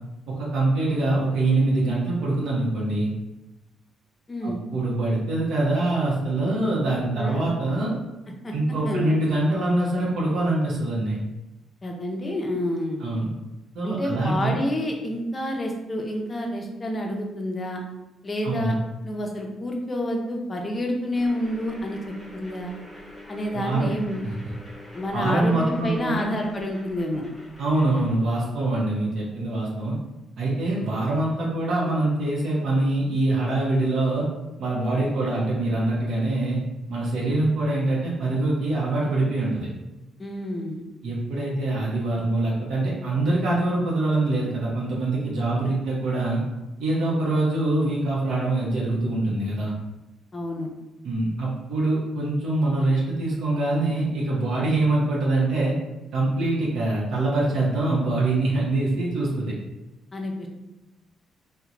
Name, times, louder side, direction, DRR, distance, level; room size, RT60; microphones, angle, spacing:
voice 1, 0.3-3.1 4.4-7.9 8.5-11.2 13.0-13.3 13.7-14.6 18.4-18.8 23.5-23.9 24.2-24.3 25.1-26.3 27.6-30.0 30.4-34.3 34.6-36.6 36.9-39.7 41.0-46.4 46.8-49.7 51.0-55.7 56.1-59.5, right 2 dB, 75° right, -5 dB, 0.6 m, -24 dB
voice 2, 4.3-4.6 7.2-7.4 8.4-8.5 8.8-9.1 11.8-13.0 13.8-17.8 18.2-18.8 19.0-22.7 23.3-24.2 24.9-27.2 40.2-40.8 50.3-50.7 60.1-60.5, left 1 dB, 30° left, 1 dB, 0.5 m, -29 dB
sound 1, 21.1-28.2, left 1 dB, 10° right, 0.7 m, -44 dB
2.8 x 2.1 x 2.4 m, 1.0 s
cardioid pair, 90°, 0 cm